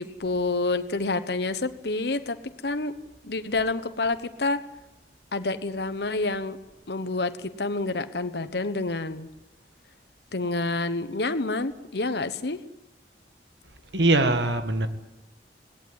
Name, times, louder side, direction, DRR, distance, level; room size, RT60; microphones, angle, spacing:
voice 1, 0.0-2.9 3.2-4.6 5.3-6.6 6.9-9.3 10.3-12.6, left 3 dB, 65° left, 1.1 m, -28 dB
voice 2, 13.9-14.9, right 2 dB, 75° right, 1.7 m, -22 dB
18.0 x 17.0 x 9.5 m
head